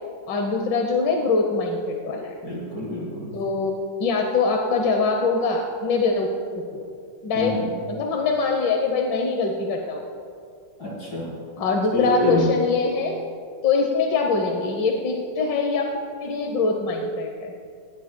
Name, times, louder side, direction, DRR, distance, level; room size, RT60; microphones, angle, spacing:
voice 1, 0.3-2.3 3.3-3.7 4.0-6.3 6.7-6.8 7.2-7.5 7.9-10.0 11.6-13.2 13.6-15.9 16.2-17.5, left 4 dB, 75° left, 2 dB, 1.7 m, -23 dB
voice 2, 2.4-3.3 7.3-7.7 10.8-11.3 11.9-12.5, equal, 55° left, -7 dB, 4.4 m, -26 dB
20.0 x 17.0 x 2.2 m, 2.3 s
omnidirectional pair, 2.0 m